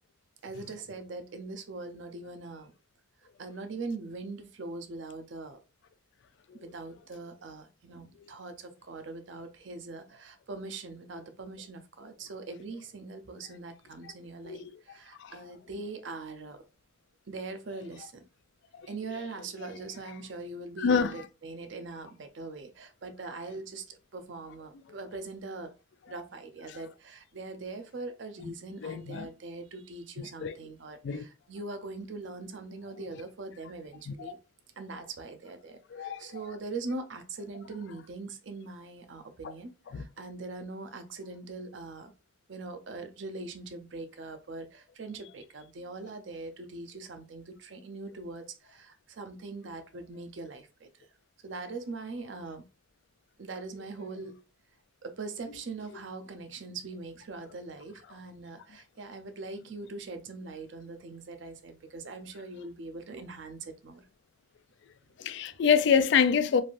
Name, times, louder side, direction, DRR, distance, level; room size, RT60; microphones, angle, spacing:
voice 1, 0.4-2.7 3.4-5.6 6.5-16.7 17.3-18.2 18.9-25.7 26.1-34.4 34.8-42.1 42.5-50.9 51.4-52.6 53.4-54.4 55.0-64.1, right 3 dB, 65° right, 0.5 m, -42 dB
voice 2, 20.8-21.2 28.8-29.3 30.4-30.5 31.0-31.2 34.1-34.3 35.9-36.3 39.9-40.0 65.2-66.6, left 6 dB, 65° left, 0.3 m, -26 dB
3.2 x 2.6 x 2.5 m
head